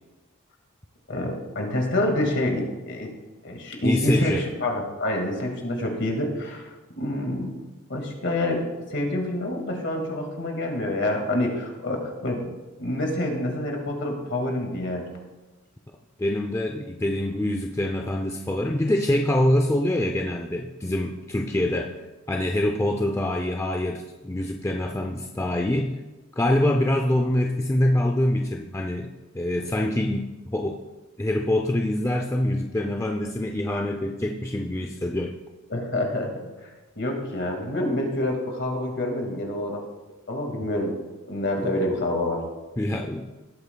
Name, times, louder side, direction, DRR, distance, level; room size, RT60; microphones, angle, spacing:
voice 1, 1.1-3.1 3.4-6.7 7.0-7.6 7.9-8.6 8.9-12.5 12.8-15.0 35.7-36.7 37.0-39.8 40.3-40.9 41.3-42.4, left 1 dB, 55° left, 2 dB, 2.0 m, -27 dB
voice 2, 3.8-4.5 16.2-22.0 22.3-25.9 26.4-30.8 31.2-35.4 41.6-41.7 42.8-43.3, left 1 dB, 15° left, 2 dB, 0.4 m, -25 dB
17.5 x 8.4 x 2.3 m, 1.1 s
head